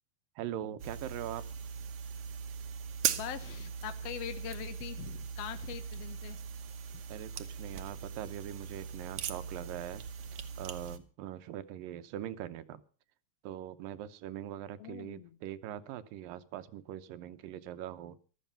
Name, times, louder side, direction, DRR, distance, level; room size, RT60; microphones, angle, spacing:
voice 1, 0.4-1.4 7.1-10.0 10.6-12.8 13.4-18.2, right 11 dB, 85° right, 12 dB, 2.6 m, -42 dB
Short Revolver handling, 0.8-11.0, right 7 dB, 65° right, 1.6 m, -40 dB
voice 2, 3.2-6.4 14.8-15.3, left 11 dB, 70° left, 10 dB, 1.5 m, -42 dB
15.0 x 12.5 x 5.7 m, 0.38 s
omnidirectional pair, 3.9 m